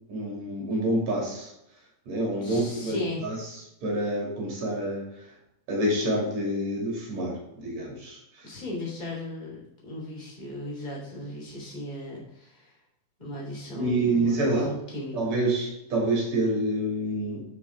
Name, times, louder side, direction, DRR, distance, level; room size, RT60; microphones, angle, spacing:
voice 1, 0.1-1.5 2.1-3.4 3.8-5.0 5.7-8.5 13.8-14.7 15.1-17.5, right 1 dB, 45° right, -2 dB, 3.5 m, -27 dB
voice 2, 2.4-3.2 8.4-12.7 13.2-15.2, left 1 dB, 15° left, -3 dB, 2.8 m, -37 dB
8.9 x 6.2 x 4.6 m, 0.85 s
omnidirectional pair, 4.6 m